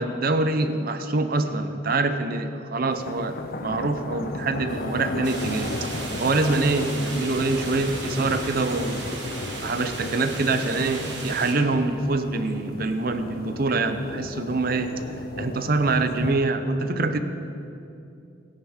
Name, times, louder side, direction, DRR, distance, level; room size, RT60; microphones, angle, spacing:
voice 1, 0.0-3.4 3.6-5.9 6.2-9.1 9.6-14.9 15.4-17.2, right 3 dB, 50° right, 9 dB, 0.7 m, -25 dB
sound 1, 2.9-16.3, left 2 dB, 50° left, 0.6 m, -35 dB
sound 2, 4.7-9.9, left 1 dB, 20° left, 1.4 m, -47 dB
sound 3, 5.2-11.5, right 3 dB, 65° right, 1.6 m, -36 dB
17.0 x 10.5 x 3.6 m, 2.7 s
head